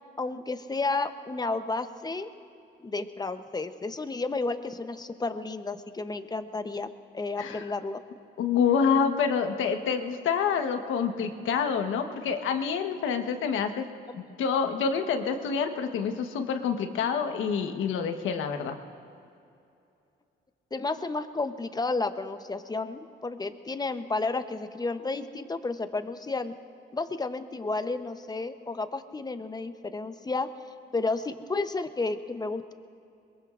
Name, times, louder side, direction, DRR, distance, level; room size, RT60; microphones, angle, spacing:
voice 1, 0.2-2.3 2.8-6.9 7.1-8.0 20.7-26.5 26.9-30.5 30.9-32.7, left 3 dB, 20° left, 10 dB, 0.8 m, -32 dB
voice 2, 7.4-7.7 8.4-13.9 14.1-18.8, left 6 dB, 80° left, 6 dB, 1.2 m, -27 dB
22.0 x 22.0 x 2.5 m, 2.6 s
cardioid pair, 90°, 20 cm